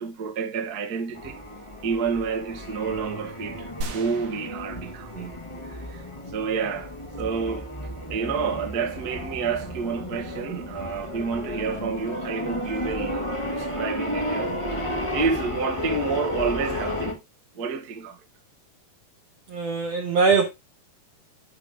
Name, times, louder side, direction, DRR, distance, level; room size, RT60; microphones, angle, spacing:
voice 1, 0.0-1.4 1.8-5.4 5.6-6.0 6.3-6.9 7.2-7.7 8.1-17.2 17.5-18.2, right 5 dB, 45° right, 1.3 m, -29 dB
sound 1, 1.1-17.1, left 1 dB, 15° left, 1.1 m, -33 dB
sound 2, 3.8-5.7 6.1-6.2, right 2 dB, 80° right, 3.9 m, -38 dB
voice 2, 19.5-20.5, right 4 dB, 65° right, 1.7 m, -21 dB
11.0 x 5.9 x 3.7 m
omnidirectional pair, 4.4 m